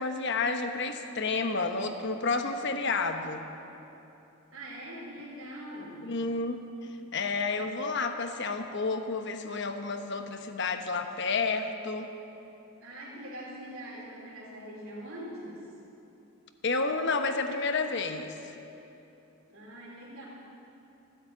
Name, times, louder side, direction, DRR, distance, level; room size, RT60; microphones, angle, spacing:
voice 1, 0.0-3.4 6.0-6.6 7.1-12.1 16.6-18.4, left 4 dB, 50° left, 7 dB, 1.0 m, -30 dB
voice 2, 4.5-6.1 12.8-15.6 19.5-20.3, equal, 65° right, -5 dB, 3.3 m, -43 dB
15.0 x 10.5 x 8.3 m, 2.9 s
head